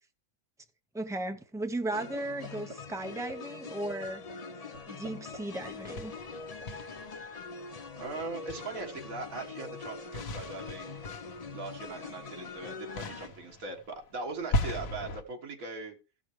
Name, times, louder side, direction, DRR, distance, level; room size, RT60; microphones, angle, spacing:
voice 1, 0.9-4.2 4.9-6.1, right 1 dB, 5° right, 0.3 m, -36 dB
sound 1, 1.9-13.3, left 4 dB, 40° left, 0.6 m, -43 dB
sound 2, 1.9-2.2 2.4-2.8 3.1-3.3 3.7-3.9 4.3-4.4 4.7-5.4 5.7-6.7, right 2 dB, 55° right, 2.0 m, -45 dB
sound 3, 5.6-7.6 8.2-9.0 9.8-12.6 13.0-15.2, left 1 dB, 90° left, 1.4 m, -37 dB
voice 2, 8.0-11.0 11.5-16.0, right 3 dB, 85° right, 2.0 m, -40 dB
15.0 x 6.2 x 3.1 m
omnidirectional pair, 1.4 m